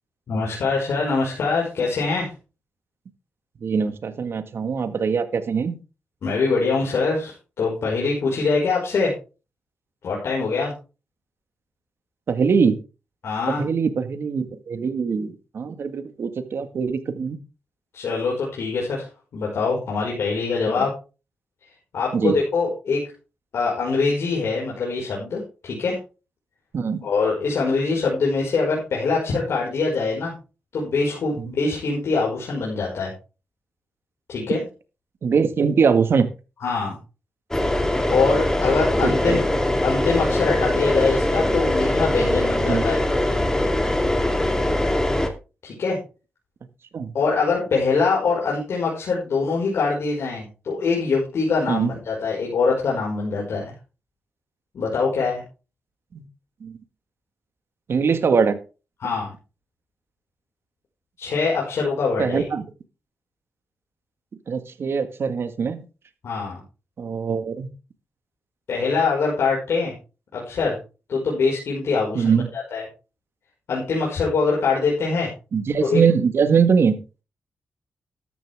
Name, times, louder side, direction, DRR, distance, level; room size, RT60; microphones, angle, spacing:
voice 1, 0.3-2.3 6.2-9.1 10.0-10.7 13.2-13.6 17.9-19.1 19.3-20.9 21.9-23.1 23.5-26.0 27.0-30.3 30.7-33.1 34.3-34.6 36.6-37.0 38.1-39.4 39.8-43.0 45.6-46.0 47.1-53.7 54.7-55.4 59.0-59.3 61.2-62.4 66.2-66.6 68.7-69.9 70.3-70.8 71.1-72.8 73.7-75.3 75.8-76.0, left 4 dB, 75° left, -3 dB, 5.3 m, -23 dB
voice 2, 3.6-5.8 12.3-12.8 13.5-17.4 22.1-22.3 26.7-27.0 31.4-31.5 35.2-36.3 39.0-39.4 42.7-42.8 46.9-47.1 51.7-51.9 56.1-56.2 56.6-56.7 57.9-58.6 62.2-62.6 64.5-65.8 67.0-67.7 72.2-72.5 75.5-77.0, right 6 dB, 65° right, 10 dB, 1.7 m, -22 dB
sound 1, 37.5-45.3, left 1 dB, 10° left, 2.5 m, -22 dB
13.5 x 11.0 x 3.5 m, 0.32 s
cardioid pair, 90°, 4 cm